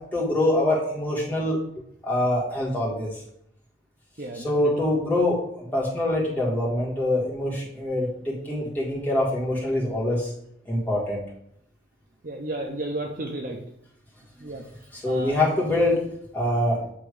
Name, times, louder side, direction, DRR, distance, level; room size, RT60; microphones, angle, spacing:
voice 1, 0.1-3.1 4.3-10.3 10.7-11.2 14.9-16.0 16.3-16.8, left 1 dB, 10° left, -5 dB, 1.8 m, -24 dB
voice 2, 4.2-4.7 12.2-13.6 14.4-14.6 15.1-15.3, right 1 dB, 50° right, 1 dB, 0.7 m, -32 dB
8.3 x 3.1 x 4.9 m, 0.74 s
head